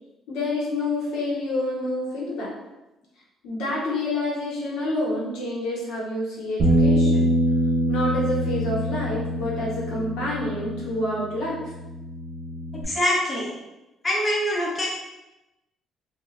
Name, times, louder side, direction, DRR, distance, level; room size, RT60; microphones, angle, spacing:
voice 1, 0.3-2.5 3.4-7.3 7.9-11.6, left 1 dB, 80° left, -4 dB, 1.0 m, -28 dB
Bass guitar, 6.6-12.8, equal, 40° right, 0.5 m, -24 dB
voice 2, 12.8-13.6 14.0-14.9, equal, 20° left, -4 dB, 0.4 m, -24 dB
2.4 x 2.3 x 3.1 m, 0.99 s
cardioid pair, 165°, 0 cm